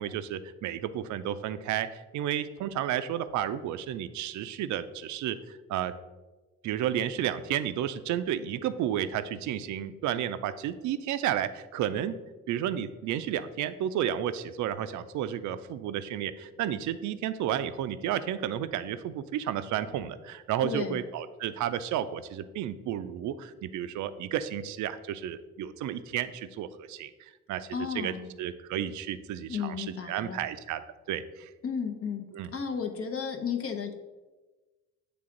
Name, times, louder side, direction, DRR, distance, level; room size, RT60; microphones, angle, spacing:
voice 1, 0.0-5.9 6.6-12.2 12.5-28.1 28.4-30.8 31.1-31.5 32.3-32.5, right 10 dB, 75° right, 12 dB, 0.4 m, -32 dB
voice 2, 20.6-21.0 27.7-28.3 29.5-30.4 31.6-32.3 32.5-33.9, left 6 dB, 50° left, 4 dB, 0.7 m, -33 dB
7.7 x 3.4 x 3.8 m, 1.2 s
cardioid pair, 90°, 30 cm